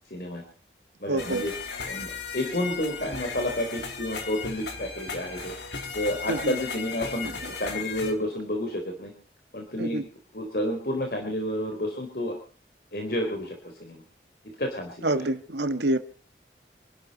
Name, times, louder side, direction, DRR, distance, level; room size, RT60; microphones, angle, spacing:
voice 1, 0.1-0.4 1.0-1.5 1.9-5.5 5.9-9.1 9.5-10.0 10.3-12.4 12.9-14.0 14.6-15.3, left 1 dB, 55° left, 4.0 m, -30 dB
voice 2, 1.1-1.4 6.3-6.6 7.2-7.3 9.8-10.1 15.0-16.0, right 1 dB, 85° right, 1.7 m, -27 dB
sound 1, 1.2-8.1, left 5 dB, 85° left, 4.2 m, -36 dB
27.5 x 12.0 x 4.3 m
head